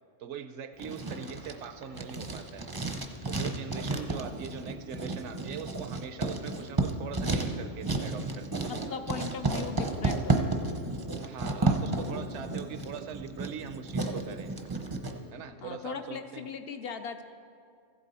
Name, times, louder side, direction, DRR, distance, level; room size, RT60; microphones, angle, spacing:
voice 1, 0.2-2.7 3.3-8.7 11.2-14.5 15.3-16.5, right 7 dB, 70° right, 9 dB, 0.9 m, -42 dB
Writing, 0.8-15.1, right 2 dB, 25° right, 0.5 m, -32 dB
voice 2, 8.7-10.6 15.6-17.2, left 6 dB, 60° left, 7 dB, 0.7 m, -39 dB
14.5 x 8.1 x 4.1 m, 2.2 s
omnidirectional pair, 1.3 m